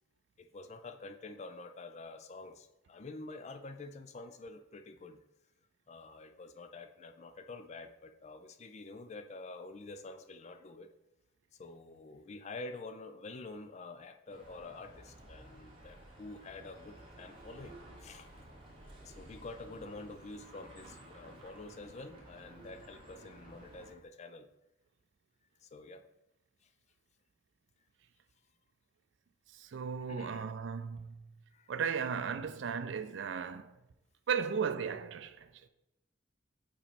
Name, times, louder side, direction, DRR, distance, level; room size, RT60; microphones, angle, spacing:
voice 1, 0.4-5.2 5.9-10.9 11.6-18.3 19.0-24.5 25.6-26.0 30.1-30.4 31.5-31.7, left 3 dB, 35° left, 0.4 m, -48 dB
sound 1, 14.3-23.9, right 1 dB, 25° right, 1.4 m, -54 dB
voice 2, 29.5-31.2 31.7-33.8 34.3-35.5, right 6 dB, 70° right, 0.4 m, -35 dB
5.1 x 4.3 x 5.1 m
head